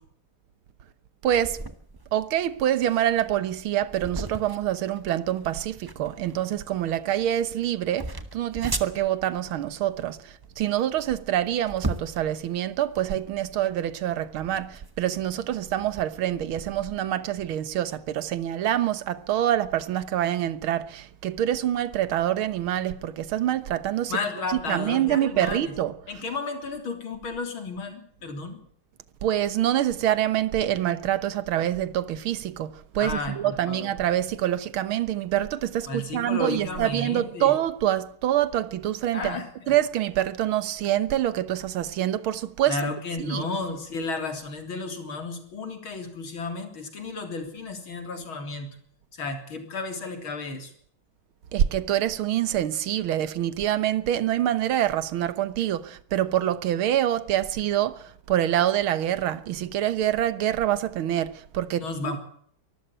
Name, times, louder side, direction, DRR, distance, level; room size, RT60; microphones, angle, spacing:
sound 1, 1.2-17.0, right 2 dB, 15° right, 0.9 m, -39 dB
voice 1, 1.2-1.6 2.1-24.2 24.5-26.2 29.2-42.8 43.2-43.5 51.5-62.2, right 12 dB, 85° right, 1.9 m, -26 dB
voice 2, 24.1-25.7 26.1-28.6 33.0-33.9 35.9-37.5 39.1-39.7 42.7-48.7 49.1-50.7 61.8-62.2, left 3 dB, 80° left, 4.2 m, -33 dB
23.5 x 14.0 x 8.9 m
omnidirectional pair, 2.2 m